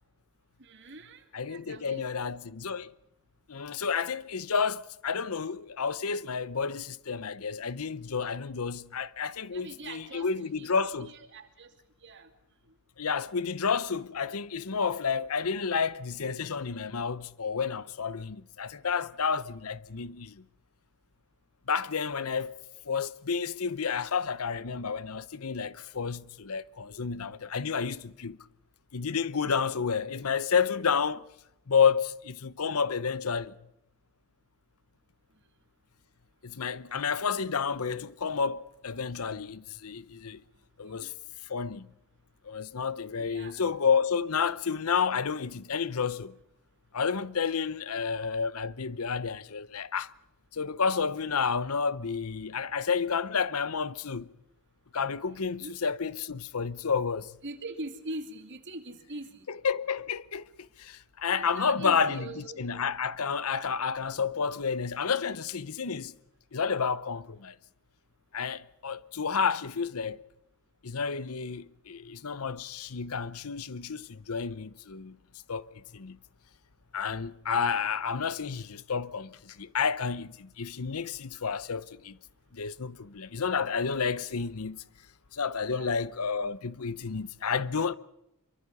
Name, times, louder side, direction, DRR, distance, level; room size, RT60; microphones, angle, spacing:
voice 1, 0.6-2.2 9.5-10.3 10.6-10.7 11.0-11.7 12.0-12.3 12.7-12.8 40.8-41.1 43.2-43.6 55.6-55.7 57.4-59.5 61.3-62.6 85.7-85.9, right 2 dB, 55° right, 2.7 m, -42 dB
voice 2, 1.3-2.9 3.5-11.1 13.0-20.4 21.7-22.6 22.9-28.4 28.9-31.2 31.7-33.5 36.4-40.4 40.8-41.1 41.4-41.9 42.4-46.4 46.9-50.1 50.5-54.3 54.9-57.4 59.5-66.1 66.5-67.5 68.3-70.2 70.8-75.2 75.5-76.2 76.9-82.2 82.5-84.8 85.3-87.9, left 6 dB, 75° left, 0.8 m, -30 dB
25.5 x 24.0 x 5.4 m
head